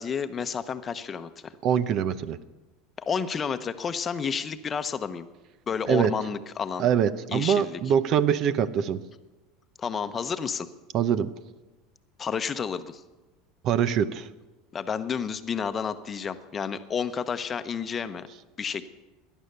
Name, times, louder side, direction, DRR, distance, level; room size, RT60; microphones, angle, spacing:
voice 1, 0.0-1.5 3.0-5.3 5.7-6.9 7.3-7.8 9.8-10.7 12.2-13.0 14.7-18.3 18.6-18.9, left 6 dB, 25° left, 10 dB, 0.9 m, -31 dB
voice 2, 1.6-2.4 5.9-6.1 6.8-9.0 10.9-11.3 13.6-14.3, right 8 dB, 50° right, 15 dB, 0.8 m, -24 dB
18.0 x 11.0 x 6.8 m, 1.2 s
supercardioid pair, 120°, 0 cm